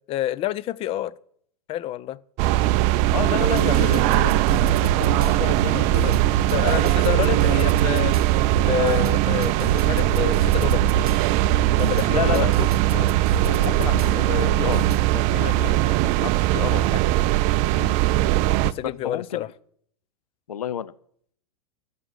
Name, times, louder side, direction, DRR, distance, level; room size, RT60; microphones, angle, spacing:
voice 1, 0.1-1.1 1.7-2.2 3.9-4.0 5.9-6.0 6.5-8.2 8.6-10.8 11.8-12.5 12.9-13.1 13.9-14.3 15.6-15.8 17.8-17.9 18.6-19.5, left 13 dB, 30° left, 18 dB, 0.5 m, -28 dB
sound 1, 2.4-18.7, right 16 dB, 40° right, 0.4 m, -20 dB
voice 2, 3.1-6.1 12.1-12.5 13.4-14.8 15.1-17.2 18.8-19.4 20.5-20.9, left 9 dB, 80° left, 17 dB, 0.7 m, -31 dB
sound 2, 3.4-15.1, right 3 dB, 85° right, 0.8 m, -30 dB
12.5 x 5.5 x 8.1 m, 0.63 s
hypercardioid pair, 100°, 19 cm